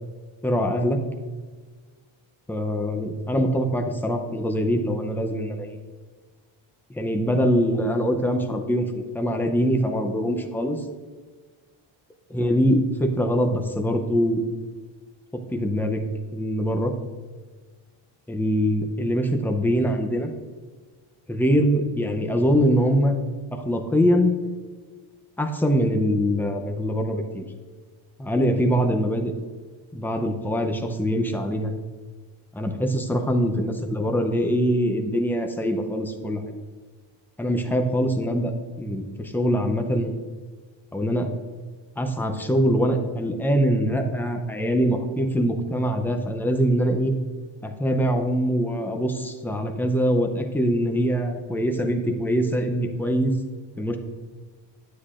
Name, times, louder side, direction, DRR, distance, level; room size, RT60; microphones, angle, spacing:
voice 1, 0.4-1.0 2.5-5.8 6.9-10.8 12.3-14.4 15.3-16.0 16.3-16.9 18.3-20.3 21.3-23.1 23.5-24.3 25.4-27.4 28.2-29.3 29.9-31.7 32.5-36.5 37.4-40.1 40.9-41.3 42.0-47.1 47.6-53.3 53.8-54.0, equal, 5° left, 4 dB, 0.5 m, -23 dB
9.6 x 8.4 x 2.4 m, 1.4 s
cardioid pair, 150°, 49 cm